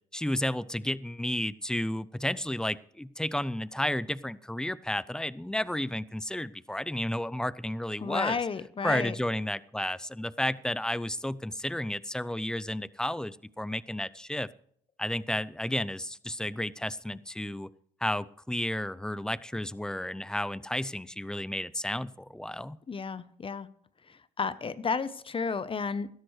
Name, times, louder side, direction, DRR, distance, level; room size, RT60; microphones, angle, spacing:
voice 1, 0.1-8.4 8.8-14.5 15.0-17.7 18.0-22.8, left 1 dB, 5° left, 19 dB, 0.5 m, -32 dB
voice 2, 8.0-9.1 22.9-23.7 24.1-26.1, left 5 dB, 30° left, 15 dB, 0.8 m, -32 dB
16.5 x 12.5 x 3.2 m, 0.65 s
cardioid pair, 80°, 17 cm